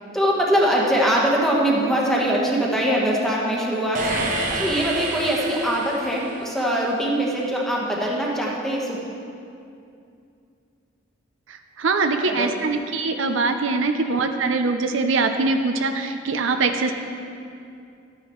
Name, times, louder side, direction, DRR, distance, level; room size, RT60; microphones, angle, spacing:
voice 1, 0.1-9.0 12.3-12.5 14.0-14.2, equal, ahead, -3 dB, 1.1 m, -22 dB
sound 1, 3.9-6.8, right 2 dB, 40° right, 1.0 m, -29 dB
voice 2, 11.5-16.9, right 3 dB, 70° right, 6 dB, 0.5 m, -23 dB
12.5 x 9.5 x 3.1 m, 2.5 s
head